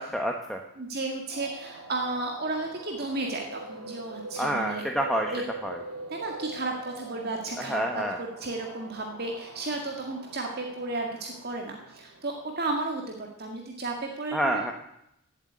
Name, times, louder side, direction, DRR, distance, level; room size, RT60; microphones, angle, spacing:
voice 1, 0.0-0.6 4.4-5.3 5.6-5.8 7.6-8.2 14.3-14.7, right 1 dB, ahead, 1 dB, 1.1 m, -28 dB
voice 2, 0.8-4.8 5.3-5.4 6.1-14.7, right 2 dB, 45° right, 2 dB, 1.8 m, -33 dB
sound 1, 1.3-12.6, right 2 dB, 80° right, 3.4 m, -43 dB
16.0 x 8.0 x 9.2 m, 0.78 s
head